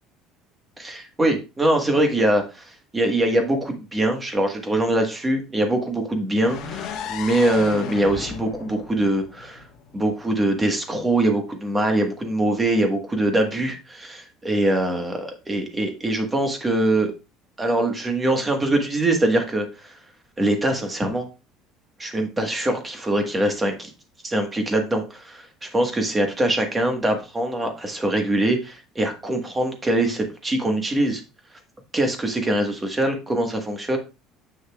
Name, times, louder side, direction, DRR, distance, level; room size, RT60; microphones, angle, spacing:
voice 1, 0.8-9.6 9.9-17.1 17.6-20.0 20.4-21.3 22.0-23.9 24.2-31.2 31.9-34.0, right 1 dB, 10° right, 4 dB, 1.2 m, -23 dB
sound 1, 6.4-10.3, left 7 dB, 50° left, 1.1 m, -35 dB
8.1 x 6.5 x 2.3 m, 0.29 s
cardioid pair, 170°, 0 cm